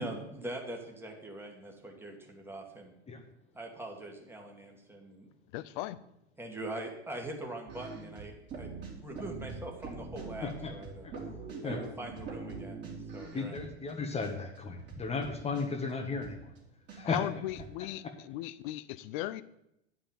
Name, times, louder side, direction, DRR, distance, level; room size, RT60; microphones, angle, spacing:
voice 1, 0.0-2.9 3.5-5.3 6.4-11.0 11.6-12.9 13.1-13.6, right 1 dB, 5° right, 1 dB, 2.1 m, -42 dB
voice 2, 5.5-6.0 17.0-19.4, left 15 dB, 45° left, 17 dB, 0.6 m, -37 dB
sound 1, 7.7-13.9 14.2-14.3 14.5-16.6 16.9-17.0 17.2-17.7, right 4 dB, 30° right, 3.3 m, -43 dB
voice 3, 10.4-10.7 11.0-11.1 11.6-11.8 13.3-16.5 16.9-17.2, left 4 dB, 20° left, 4 dB, 1.4 m, -35 dB
9.9 x 5.8 x 7.4 m, 0.82 s
hypercardioid pair, 105°, 34 cm